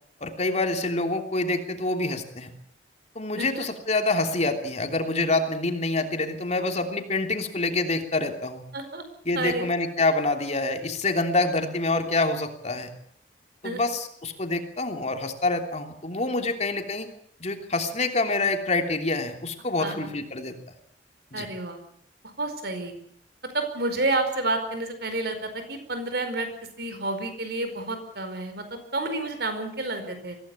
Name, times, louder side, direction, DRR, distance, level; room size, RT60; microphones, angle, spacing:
voice 1, 0.2-2.5 3.1-8.6 9.2-12.9 13.6-17.1 17.4-20.5 21.3-21.4, left 2 dB, 40° left, 5 dB, 3.1 m, -26 dB
voice 2, 3.4-3.7 8.7-9.0 9.3-9.7 13.6-13.8 19.8-20.1 21.3-21.8 22.2-23.0 23.4-26.5 26.8-30.4, right 2 dB, 60° right, 8 dB, 4.9 m, -30 dB
23.5 x 16.5 x 8.6 m, 0.65 s
head